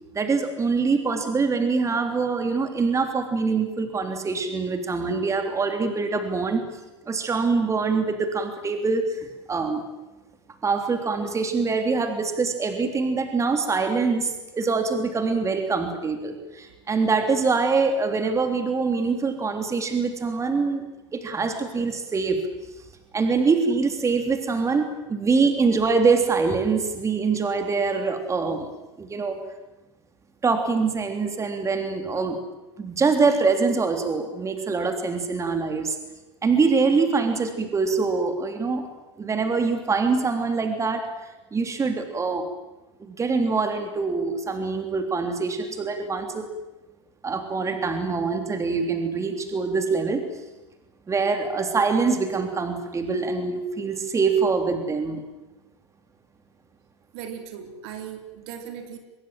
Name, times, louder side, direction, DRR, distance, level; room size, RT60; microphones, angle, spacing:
voice 1, 0.1-6.6 7.1-9.8 10.6-20.8 21.1-22.4 23.1-28.7 29.0-29.4 30.4-32.4 32.8-36.0 36.4-38.9 39.2-42.5 43.0-46.5 47.2-50.2 51.1-55.2, right 4 dB, 20° right, 6 dB, 3.5 m, -24 dB
voice 2, 57.1-59.0, right 8 dB, 60° right, 5 dB, 3.9 m, -38 dB
24.5 x 22.0 x 7.8 m, 1.1 s
hypercardioid pair, 90°, 15 cm